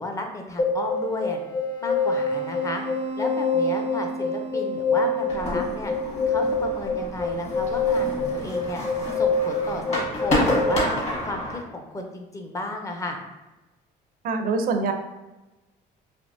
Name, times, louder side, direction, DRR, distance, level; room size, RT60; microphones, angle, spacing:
voice 1, 0.0-1.4 1.8-2.8 3.2-5.9 6.3-8.8 9.1-10.9 11.2-13.2, left 2 dB, 20° left, 3 dB, 0.5 m, -33 dB
sound 1, 0.6-10.7, left 3 dB, 65° left, 1.5 m, -26 dB
sound 2, 5.3-11.6, left 1 dB, 40° left, 1.5 m, -29 dB
voice 2, 14.2-14.9, right 4 dB, 60° right, 6 dB, 0.5 m, -24 dB
3.4 x 2.8 x 2.6 m, 1.1 s
cardioid pair, 110°, 17 cm